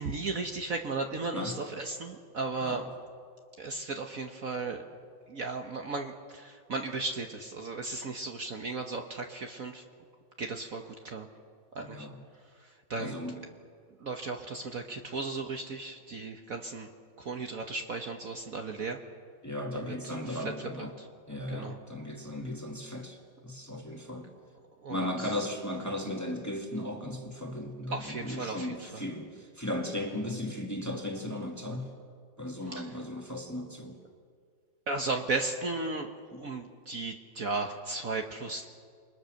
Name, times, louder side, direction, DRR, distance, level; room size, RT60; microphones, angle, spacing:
voice 1, 0.0-2.8 3.6-4.8 5.3-9.8 10.4-11.3 11.7-12.1 12.6-13.2 14.0-16.9 17.2-19.0 19.7-20.5 20.8-21.1 21.5-21.8 24.8-25.3 27.9-29.0 32.7-32.9 34.9-36.1 36.4-38.7, right 3 dB, 50° right, 3 dB, 1.5 m, -35 dB
voice 2, 11.8-12.1 13.0-13.5 19.4-20.9 21.3-23.2 23.4-24.3 24.9-31.9 32.4-34.0, left 1 dB, 10° left, 2 dB, 2.0 m, -36 dB
28.5 x 22.0 x 6.5 m, 2.1 s
omnidirectional pair, 2.0 m